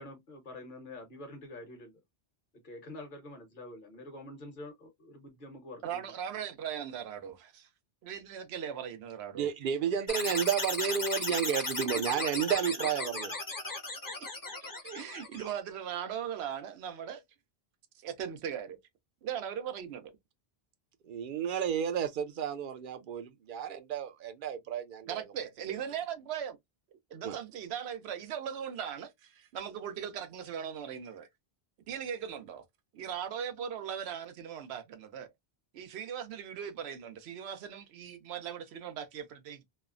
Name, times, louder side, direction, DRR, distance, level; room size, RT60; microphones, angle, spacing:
voice 1, 0.0-1.9 2.6-6.1, left 1 dB, 55° left, 1.1 m, -47 dB
voice 2, 5.8-7.7 8.0-9.5 11.9-12.4 13.0-13.1 14.2-14.3 14.6-17.2 18.0-18.8 19.2-20.1 25.0-26.6 27.1-31.3 31.9-32.6 32.9-35.3 35.7-39.6, right 8 dB, 90° right, 0.9 m, -39 dB
voice 3, 9.3-13.3 21.0-25.2 25.7-25.8 27.2-27.4, right 8 dB, 60° right, 0.6 m, -32 dB
sound 1, 10.1-15.5, left 2 dB, 25° left, 0.6 m, -36 dB
3.1 x 2.0 x 2.3 m
omnidirectional pair, 1.0 m